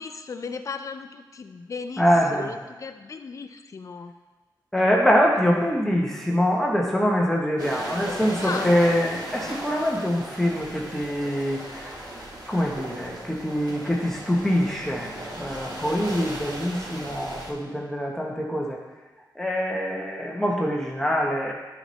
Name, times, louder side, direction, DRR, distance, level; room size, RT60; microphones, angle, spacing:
voice 1, 0.0-2.1 2.3-4.1 8.4-8.7, left 5 dB, 45° left, 7 dB, 0.4 m, -35 dB
voice 2, 2.0-2.5 4.7-12.0 12.5-18.8 19.4-21.5, equal, 5° left, -2 dB, 0.8 m, -24 dB
sound 1, 7.6-17.5, right 1 dB, 55° right, 1.4 m, -36 dB
11.5 x 4.0 x 3.1 m, 1.3 s
wide cardioid pair, 175°, 8 cm